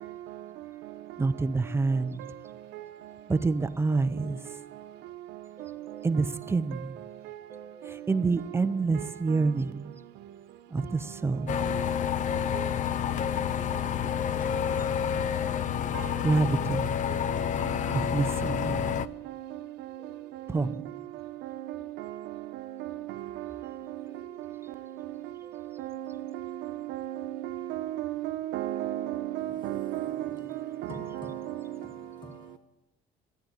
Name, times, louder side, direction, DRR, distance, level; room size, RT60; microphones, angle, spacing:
voice 1, 1.2-2.2 3.3-4.4 5.6-7.0 7.5-9.9 10.7-11.7 14.7-15.3 16.2-16.9 17.9-18.9 20.0-20.1 20.5-20.9 24.2-24.5 25.4-25.9, right 3 dB, 15° right, 0.6 m, -28 dB
sound 1, 11.5-19.1, left 8 dB, 50° left, 0.5 m, -29 dB
voice 2, 26.9-30.3 30.9-31.4, right 13 dB, 85° right, 0.9 m, -33 dB
voice 3, 30.9-32.6, left 1 dB, 25° left, 1.8 m, -46 dB
13.0 x 9.3 x 8.7 m
cardioid pair, 110°, 17 cm